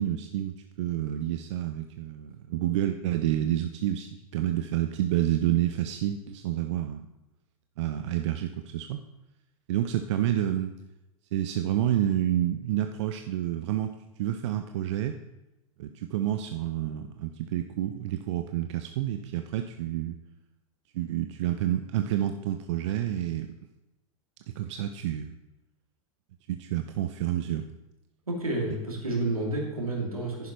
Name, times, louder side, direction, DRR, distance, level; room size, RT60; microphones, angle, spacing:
voice 1, 0.0-7.1 7.8-9.0 9.7-10.7 11.3-13.9 14.2-15.2 15.8-20.2 20.9-23.5 24.6-25.3 26.5-27.7, right 12 dB, 55° right, 7 dB, 0.6 m, -29 dB
voice 2, 28.3-30.5, right 2 dB, 85° right, -1 dB, 2.7 m, -30 dB
11.0 x 10.0 x 3.1 m, 1.0 s
figure-of-eight pair, 95°, 18 cm